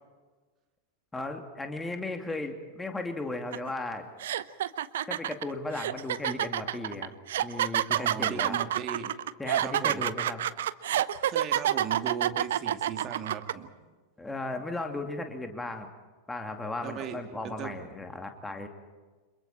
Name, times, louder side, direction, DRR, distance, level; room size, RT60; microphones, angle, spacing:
voice 1, 1.1-4.1 5.1-7.1 7.4-8.6 9.4-10.4 14.2-15.9 16.3-18.7, left 2 dB, 10° left, 5 dB, 2.6 m, -36 dB
sound 1, 3.5-3.7 4.2-13.5, right 11 dB, 60° right, 0.8 m, -28 dB
voice 2, 7.9-9.2 9.6-10.1 11.2-13.7 16.8-17.7, right 8 dB, 30° right, 4 dB, 2.6 m, -38 dB
29.5 x 27.0 x 4.4 m, 1.3 s
figure-of-eight pair, 90°, 0 cm